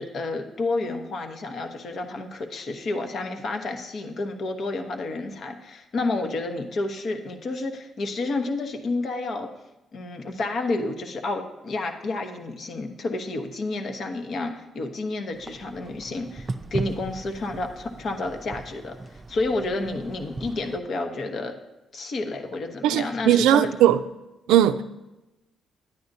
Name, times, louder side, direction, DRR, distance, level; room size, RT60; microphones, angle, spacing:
voice 1, 0.0-9.5 9.9-21.6 21.9-23.7, left 2 dB, 60° left, 1.0 m, -30 dB
sound 1, 15.3-20.8, right 2 dB, 35° right, 0.5 m, -37 dB
voice 2, 22.8-24.0 24.5-24.8, right 11 dB, 90° right, 0.3 m, -18 dB
10.0 x 9.4 x 2.7 m
supercardioid pair, 65°, 0 cm